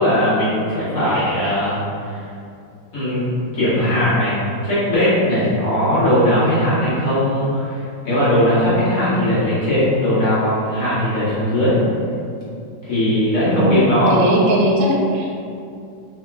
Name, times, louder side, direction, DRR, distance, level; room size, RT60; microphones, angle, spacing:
voice 1, 0.0-2.2 2.9-3.2 3.5-11.8 12.8-14.4, equal, 50° left, -10 dB, 1.4 m, -19 dB
voice 2, 13.5-13.8 14.1-15.4, right 1 dB, 80° right, -3 dB, 1.2 m, -18 dB
3.3 x 2.8 x 2.3 m, 2.5 s
omnidirectional pair, 1.9 m